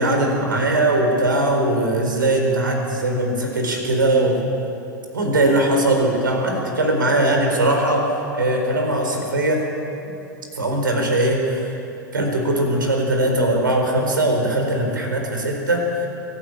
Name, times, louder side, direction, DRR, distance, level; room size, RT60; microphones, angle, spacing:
voice 1, 0.0-4.4 5.1-9.6 10.0-10.1 10.6-11.7 12.1-15.9, right 1 dB, 80° right, 2 dB, 4.3 m, -20 dB
23.0 x 12.5 x 9.1 m, 2.8 s
figure-of-eight pair, 90°, 11 cm